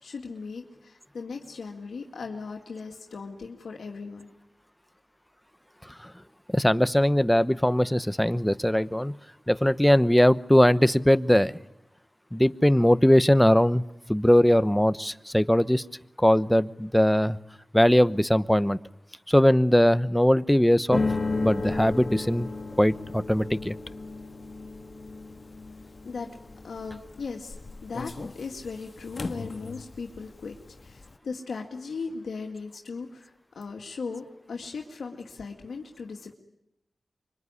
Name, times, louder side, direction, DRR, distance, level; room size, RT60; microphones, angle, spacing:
voice 1, 0.0-4.3 26.0-26.3 26.6-27.6 27.8-30.6 30.8-36.3, left 4 dB, 90° left, 2 dB, 2.2 m, -38 dB
voice 2, 6.5-9.2 9.5-11.5 12.3-13.8 14.1-15.8 16.2-17.4 17.7-18.8 19.3-21.0 21.4-22.5 22.8-23.8, equal, 5° left, 15 dB, 0.9 m, -20 dB
sound 1, 20.9-30.2 30.5-31.0, left 3 dB, 55° left, 1.6 m, -34 dB
25.0 x 23.5 x 9.8 m, 0.86 s
cardioid pair, 55°, 0 cm